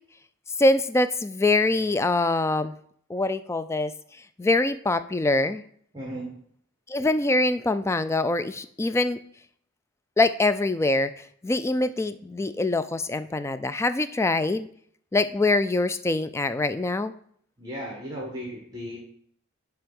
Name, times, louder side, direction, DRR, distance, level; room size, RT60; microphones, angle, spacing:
voice 1, 0.6-2.8 3.1-3.9 4.4-5.6 6.9-9.2 10.2-11.1 11.4-14.7 15.1-17.1, left 2 dB, 15° left, 12 dB, 0.3 m, -24 dB
voice 2, 5.9-6.3 17.6-19.0, equal, 20° right, -3 dB, 1.4 m, -35 dB
10.0 x 3.5 x 5.3 m, 0.63 s
head